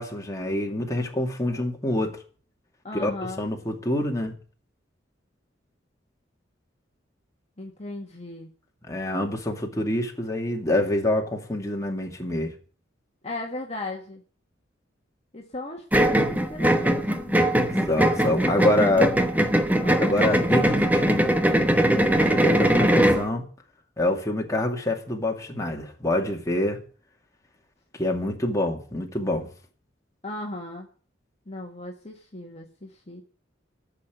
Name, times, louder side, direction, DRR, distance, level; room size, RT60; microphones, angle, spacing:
voice 1, 0.0-2.2 2.9-3.1 3.4-4.3 8.9-12.5 17.9-19.2 20.0-21.3 22.2-23.4 24.0-26.8 28.0-29.5, left 1 dB, 15° left, 2.4 m, -26 dB
voice 2, 2.8-3.5 7.6-8.5 13.2-14.2 15.3-17.5 19.8-20.8 30.2-30.9 31.5-33.2, left 2 dB, 35° left, 1.7 m, -37 dB
sound 1, 15.9-23.3, right 1 dB, 10° right, 1.1 m, -21 dB
13.0 x 6.8 x 9.2 m
head